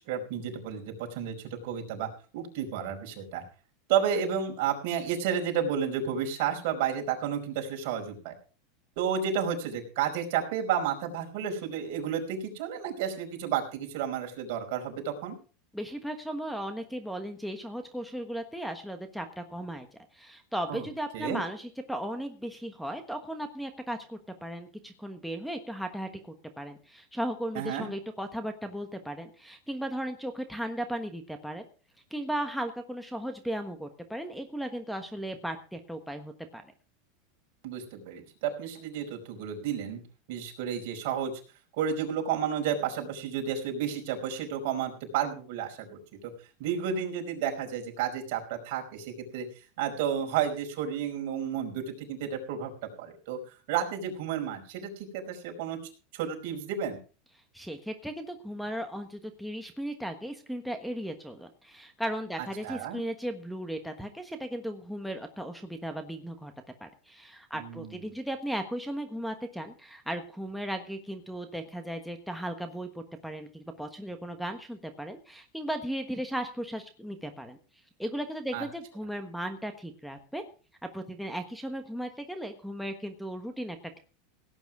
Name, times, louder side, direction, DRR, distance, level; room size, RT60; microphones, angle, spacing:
voice 1, 0.0-3.4 3.9-8.3 9.0-15.3 20.7-20.9 21.1-21.4 27.5-27.9 37.6-40.0 40.3-41.3 41.8-46.3 46.6-49.5 49.8-52.7 53.0-55.8 56.1-57.0 62.6-63.0 67.5-68.0 78.5-78.6, right 8 dB, 60° right, 2 dB, 4.9 m, -31 dB
voice 2, 15.7-19.9 20.1-31.7 32.1-36.6 57.5-66.5 66.8-77.6 78.0-80.4 80.9-84.0, right 1 dB, ahead, 4 dB, 1.3 m, -36 dB
17.5 x 9.2 x 4.9 m, 0.37 s
supercardioid pair, 145°, 0 cm